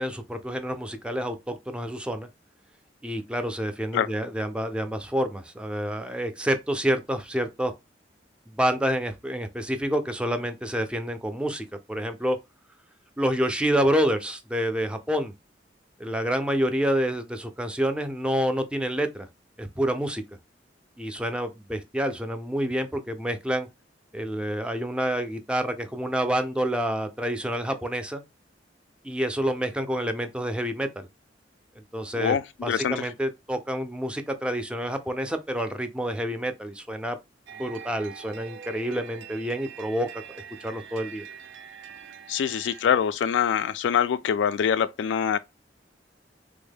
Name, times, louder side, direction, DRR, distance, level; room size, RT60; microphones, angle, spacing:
voice 1, 0.0-2.3 3.0-7.7 8.5-12.4 13.2-15.3 16.0-19.3 19.6-20.2 21.0-23.7 24.1-28.2 29.0-31.1 31.9-32.4 32.6-37.2 37.6-40.1 40.3-41.2, equal, 5° right, 0.3 m, -28 dB
voice 2, 32.1-33.0 42.3-45.4, left 8 dB, 85° left, 0.3 m, -24 dB
sound 1, 37.5-42.8, right 8 dB, 85° right, 0.4 m, -44 dB
3.4 x 2.1 x 3.4 m
head